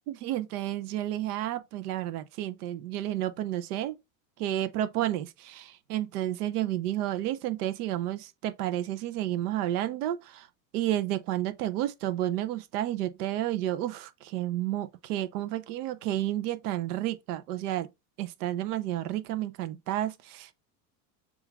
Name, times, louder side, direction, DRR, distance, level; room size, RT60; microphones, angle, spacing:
voice 1, 0.1-4.0 4.4-10.5 10.7-17.9 18.2-20.5, right 13 dB, 85° right, 0.7 m, -31 dB
6.9 x 2.5 x 2.4 m
supercardioid pair, 115°, 45 cm